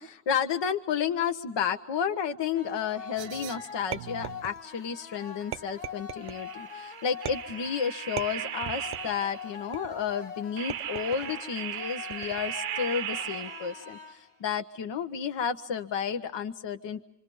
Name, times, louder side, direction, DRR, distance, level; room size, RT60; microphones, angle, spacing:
voice 1, 0.0-17.0, left 7 dB, 60° left, 7 dB, 1.1 m, -31 dB
sound 1, 2.5-14.5, left 7 dB, 85° left, 1.9 m, -44 dB
sound 2, 3.2-4.5 6.2-9.6 10.6-14.0, right 11 dB, 85° right, 0.7 m, -38 dB
sound 3, 3.9-4.9 5.5-6.4 7.3-7.7 8.2-9.2 9.7-10.1 10.7-11.4 12.1-12.6, right 11 dB, 50° right, 0.7 m, -39 dB
27.0 x 25.5 x 5.4 m, 0.90 s
hypercardioid pair, 45°, 49 cm